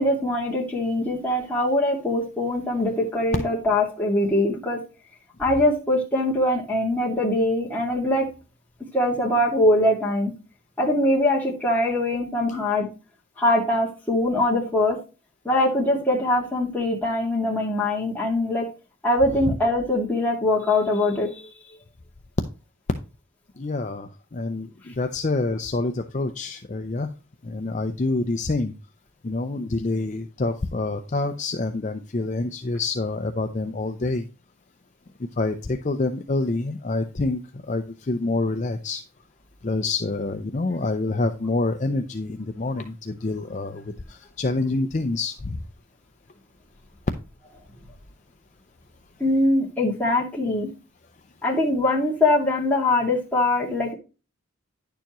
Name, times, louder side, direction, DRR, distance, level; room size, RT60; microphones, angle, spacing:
voice 1, 0.0-4.8 5.4-8.3 8.9-10.3 10.8-12.9 13.4-15.0 15.4-18.7 19.0-21.5 49.2-50.7 51.4-53.9, left 1 dB, 10° left, -4 dB, 2.1 m, -22 dB
voice 2, 23.6-27.1 27.4-28.7 29.2-34.2 35.2-39.0 39.6-43.8 44.1-45.6, left 2 dB, 35° left, 7 dB, 0.5 m, -27 dB
10.5 x 6.9 x 3.0 m, 0.32 s
head